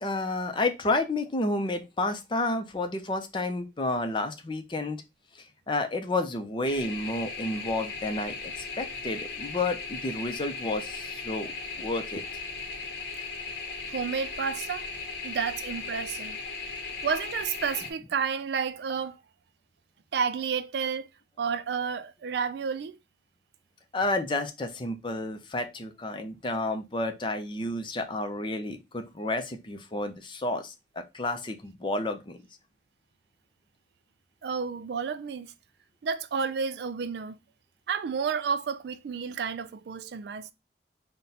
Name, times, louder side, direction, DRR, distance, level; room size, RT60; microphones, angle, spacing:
voice 1, 0.0-5.0 5.4-11.5 11.8-12.2 23.9-30.7 31.1-32.4, left 2 dB, 25° left, 0.5 m, -30 dB
sound 1, 6.6-17.9, left 4 dB, 60° left, 0.8 m, -37 dB
voice 2, 13.9-14.9 15.2-16.4 17.0-19.2 20.1-21.1 21.4-23.0 34.4-35.5 36.0-37.4 37.9-40.5, right 6 dB, 60° right, 0.3 m, -31 dB
4.0 x 2.2 x 4.0 m
head